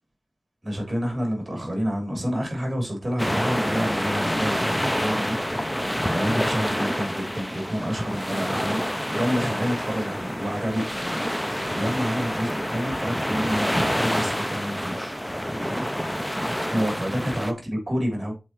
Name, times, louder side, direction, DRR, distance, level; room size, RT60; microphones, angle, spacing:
voice 1, 0.6-5.6 6.1-11.0 11.7-15.6 16.7-18.3, equal, 25° right, 3.1 m, -28 dB
sound 1, 3.2-17.5, equal, 5° left, 0.4 m, -27 dB
7.7 x 4.3 x 3.0 m
wide cardioid pair, 80°, 0 cm